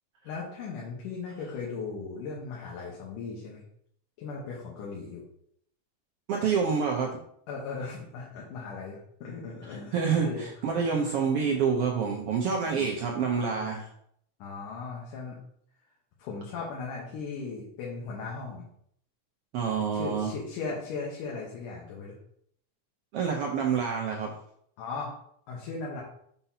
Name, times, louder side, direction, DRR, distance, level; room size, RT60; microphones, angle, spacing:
voice 1, 0.2-3.6 4.2-5.2 7.5-10.5 10.9-11.2 12.6-12.9 14.4-15.4 16.2-18.6 19.9-22.1 24.8-25.1 25.5-26.0, left 4 dB, 85° left, -3 dB, 2.7 m, -37 dB
voice 2, 6.3-7.2 9.9-13.9 19.5-20.3 23.1-24.3, right 6 dB, 85° right, 0 dB, 1.3 m, -27 dB
6.7 x 5.7 x 2.8 m, 0.68 s
omnidirectional pair, 3.6 m